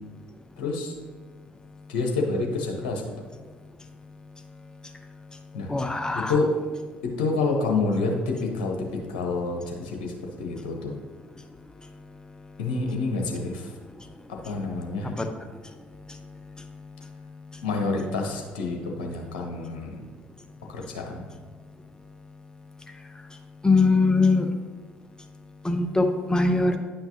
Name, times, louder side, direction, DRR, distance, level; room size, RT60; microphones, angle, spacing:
voice 1, 0.6-0.9 1.9-3.0 5.5-5.7 6.1-6.5 7.0-10.9 12.6-13.7 14.4-15.1 17.6-20.0 20.7-21.3, left 3 dB, 70° left, 1 dB, 1.0 m, -28 dB
voice 2, 5.7-6.4 15.2-15.3 23.6-24.5 25.6-26.8, left 3 dB, 15° left, 6 dB, 0.7 m, -21 dB
9.7 x 5.7 x 2.8 m, 1.5 s
figure-of-eight pair, 50°, 5 cm